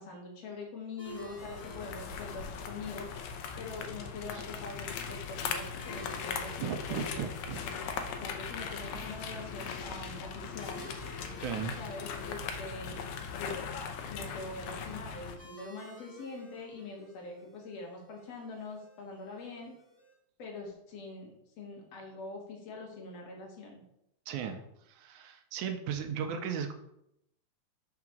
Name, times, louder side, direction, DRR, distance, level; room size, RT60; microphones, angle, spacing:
voice 1, 0.0-7.3 8.2-10.9 11.8-13.0 13.4-13.7 14.1-19.7 20.4-23.8, left 3 dB, 60° left, 0 dB, 2.2 m, -44 dB
sound 1, 1.0-20.1, right 2 dB, 5° right, 2.1 m, -55 dB
sound 2, 1.1-15.4, left 6 dB, 75° left, 1.7 m, -39 dB
voice 2, 6.6-7.6 11.4-11.7 24.3-24.6 24.9-26.7, right 7 dB, 75° right, 6 dB, 1.9 m, -36 dB
4.9 x 4.7 x 5.9 m, 0.79 s
omnidirectional pair, 3.8 m